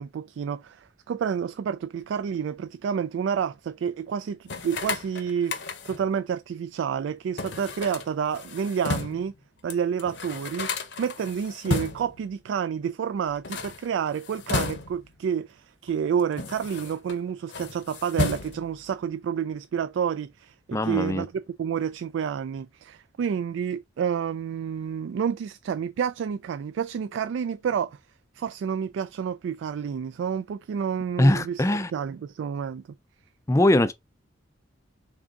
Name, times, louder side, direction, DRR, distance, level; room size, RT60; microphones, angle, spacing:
voice 1, 0.0-9.3 9.6-28.0 28.3-31.6 31.9-32.8, right 7 dB, 75° right, 0.3 m, -29 dB
sound 1, 4.5-6.1 7.4-9.3 9.7-9.8 10.0-12.2 13.3-15.2 15.9-17.2 17.5-18.8, left 3 dB, 65° left, 0.8 m, -33 dB
voice 2, 20.7-21.2 31.2-31.9 33.5-33.9, left 1 dB, 15° left, 0.4 m, -21 dB
3.8 x 3.5 x 3.9 m
head